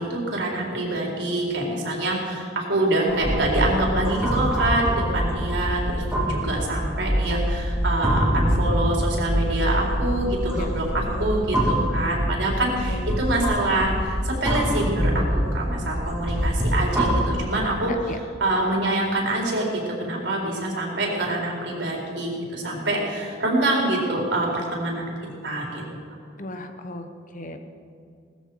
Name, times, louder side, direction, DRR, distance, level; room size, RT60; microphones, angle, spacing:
voice 1, 0.0-25.1 25.4-25.8, right 1 dB, 75° right, -2 dB, 4.5 m, -25 dB
sound 1, 3.1-17.8, equal, 5° right, 3.2 m, -25 dB
voice 2, 10.5-11.4 12.9-13.2 17.8-18.2 26.4-27.1 27.3-27.6, left 1 dB, 45° left, 7 dB, 1.3 m, -35 dB
19.5 x 14.0 x 4.9 m, 2.3 s
head